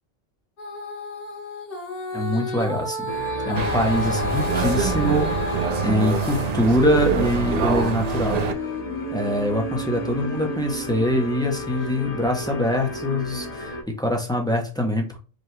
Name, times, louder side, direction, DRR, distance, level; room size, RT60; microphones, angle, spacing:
Female singing, 0.6-6.5 6.9-11.2 11.8-11.9, left 1 dB, 65° left, 1.5 m, -32 dB
voice 1, 2.1-3.1 3.5-8.4 9.1-15.2, equal, 5° left, 2 dB, 0.5 m, -24 dB
sound 1, 3.1-13.8, left 2 dB, 35° left, 0.8 m, -33 dB
sound 2, 3.5-8.5, right 7 dB, 90° right, 0.3 m, -25 dB
5.1 x 2.3 x 3.1 m, 0.36 s
omnidirectional pair, 1.3 m